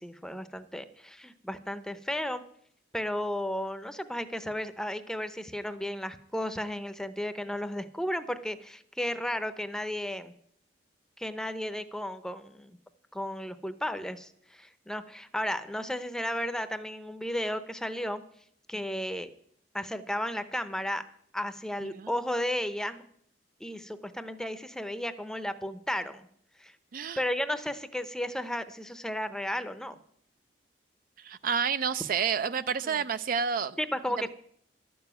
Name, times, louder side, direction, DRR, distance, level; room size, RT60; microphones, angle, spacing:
voice 1, 0.0-2.4 2.9-10.3 11.2-12.8 13.1-18.2 18.7-19.3 19.7-21.1 21.3-23.1 23.6-26.3 26.6-26.8 27.2-30.0 32.8-33.0 33.8-34.3, left 1 dB, 5° left, 0.7 m, -34 dB
voice 2, 31.2-33.8 34.2-34.3, right 6 dB, 50° right, 0.4 m, -29 dB
12.5 x 7.0 x 9.1 m
head